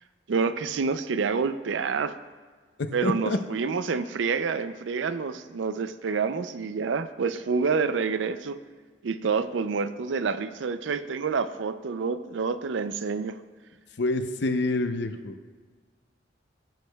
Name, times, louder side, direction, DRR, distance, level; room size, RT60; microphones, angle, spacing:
voice 1, 0.3-2.2 2.9-8.6 9.0-13.4, right 5 dB, 90° right, 12 dB, 0.4 m, -28 dB
voice 2, 2.8-3.4 14.0-15.3, left 2 dB, 65° left, 8 dB, 0.6 m, -27 dB
15.0 x 6.3 x 2.3 m, 1.5 s
head